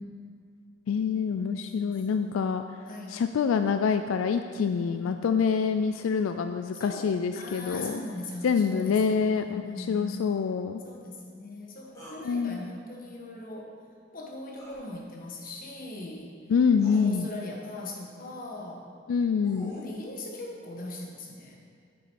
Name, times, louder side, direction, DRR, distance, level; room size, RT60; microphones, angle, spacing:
voice 1, 0.9-2.6 3.1-8.0 8.4-10.8 12.2-12.7 16.5-17.3 19.1-19.7, left 6 dB, 85° left, 8 dB, 0.3 m, -26 dB
voice 2, 1.4-2.6 2.9-3.2 4.5-5.3 6.7-10.3 10.8-13.7 14.1-16.3 16.8-19.0 19.7-21.6, left 2 dB, 45° left, -1 dB, 1.5 m, -40 dB
sound 1, 11.9-12.2 14.5-14.8 16.1-16.2 16.8-17.1 19.0-19.9, left 1 dB, 20° left, 2.4 m, -46 dB
9.0 x 7.1 x 4.7 m, 2.4 s
head